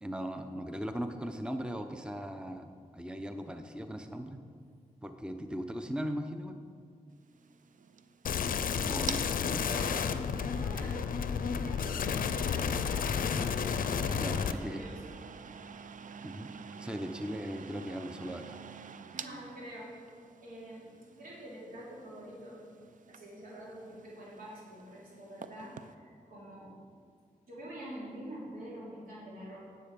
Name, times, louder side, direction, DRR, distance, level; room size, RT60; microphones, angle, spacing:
voice 1, 0.0-4.4 5.0-6.6 8.9-9.6 14.2-14.8 16.2-18.6, equal, 5° right, 7 dB, 0.7 m, -39 dB
sound 1, 7.2-25.9, right 6 dB, 65° right, 0.5 m, -48 dB
sound 2, 8.2-14.5, left 6 dB, 80° left, 0.5 m, -31 dB
voice 2, 9.5-10.1 10.4-11.1 11.5-13.2 13.9-15.2 19.1-20.0 20.4-22.7 23.1-26.7 27.5-29.6, right 1 dB, 85° right, -5 dB, 3.0 m, -46 dB
10.0 x 7.6 x 5.2 m, 2.1 s
cardioid pair, 55°, 14 cm